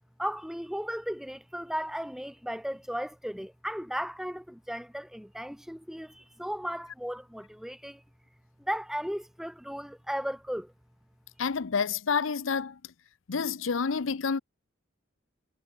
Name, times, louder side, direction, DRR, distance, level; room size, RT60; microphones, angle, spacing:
voice 1, 0.2-8.0 8.6-10.7, equal, ahead, 2.3 m, -35 dB
voice 2, 11.4-12.8 13.3-14.4, left 5 dB, 75° left, 0.7 m, -29 dB
head